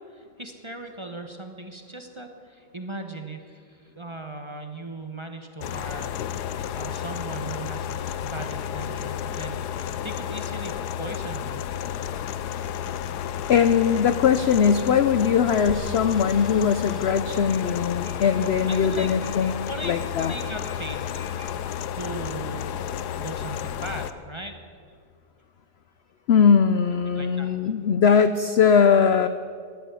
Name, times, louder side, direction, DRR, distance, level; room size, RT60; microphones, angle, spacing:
voice 1, 0.0-6.1 6.5-11.6 18.7-19.1 19.7-21.1 21.9-22.7 23.2-24.6 27.1-27.5, right 2 dB, 20° right, 5 dB, 1.0 m, -38 dB
sound 1, 5.6-24.1, left 9 dB, 85° left, 1.3 m, -32 dB
voice 2, 13.5-19.5 19.8-20.3 26.3-29.3, left 7 dB, 65° left, 11 dB, 0.6 m, -20 dB
sound 2, 15.5-21.6, right 1 dB, 50° right, 1.9 m, -48 dB
14.5 x 11.5 x 8.3 m, 2.2 s
omnidirectional pair, 1.7 m